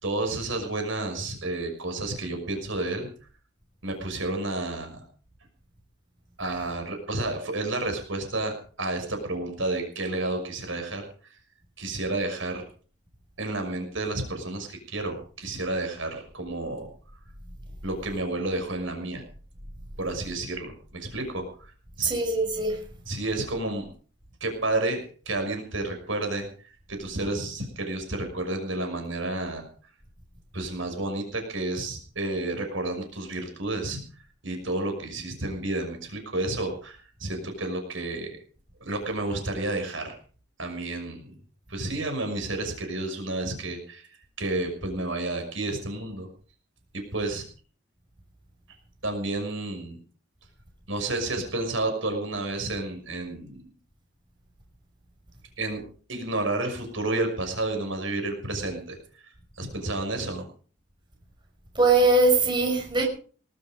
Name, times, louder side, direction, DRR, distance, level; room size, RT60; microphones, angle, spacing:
voice 1, 0.0-3.1 3.8-5.0 6.4-11.0 11.8-12.6 13.4-16.9 17.8-19.2 20.0-21.7 22.0-22.1 23.1-23.9 24.4-26.5 26.9-29.7 30.5-34.0 34.4-38.4 38.8-40.2 40.6-41.3 41.7-44.0 44.4-46.3 46.9-47.4 49.0-50.0 50.9-53.7 55.6-55.8 56.1-59.0 59.6-60.4, right 2 dB, 70° right, 6.1 m, -30 dB
voice 2, 22.0-22.8 61.8-63.1, right 3 dB, 25° right, 5.6 m, -21 dB
20.0 x 12.5 x 5.2 m
head